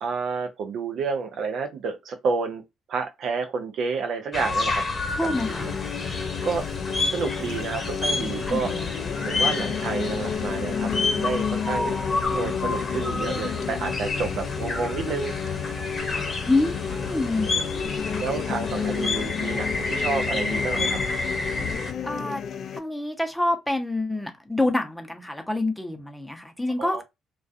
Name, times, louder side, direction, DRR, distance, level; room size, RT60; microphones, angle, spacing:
voice 1, 0.0-2.6 2.9-4.8 5.2-5.8 6.4-6.6 7.1-8.7 9.3-12.0 12.3-15.3 18.2-21.0 26.8-27.0, right 5 dB, 65° right, 0.5 m, -30 dB
sound 1, 4.3-21.9, left 3 dB, 35° left, 0.9 m, -29 dB
voice 2, 5.1-5.7 8.5-8.8 16.5-17.5 22.0-22.4 22.7-27.0, left 2 dB, 5° left, 0.6 m, -27 dB
sound 2, 5.3-22.8, left 7 dB, 60° left, 0.3 m, -31 dB
2.3 x 2.3 x 2.4 m
hypercardioid pair, 55°, 0 cm